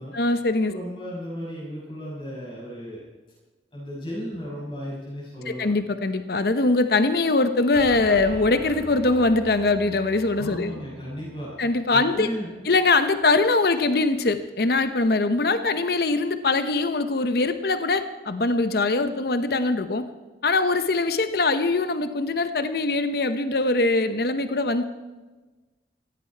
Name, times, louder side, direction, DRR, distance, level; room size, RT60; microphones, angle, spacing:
voice 1, 0.1-0.7 5.5-10.7 11.6-12.3 12.7-20.0 20.4-24.8, left 3 dB, 60° left, 10 dB, 0.9 m, -22 dB
voice 2, 0.7-3.0 3.7-5.7 10.4-11.5 11.9-12.5, equal, 30° left, -7 dB, 6.9 m, -35 dB
sound 1, 7.7-14.5, right 2 dB, 35° right, 3.3 m, -42 dB
17.5 x 15.5 x 4.6 m, 1.2 s
head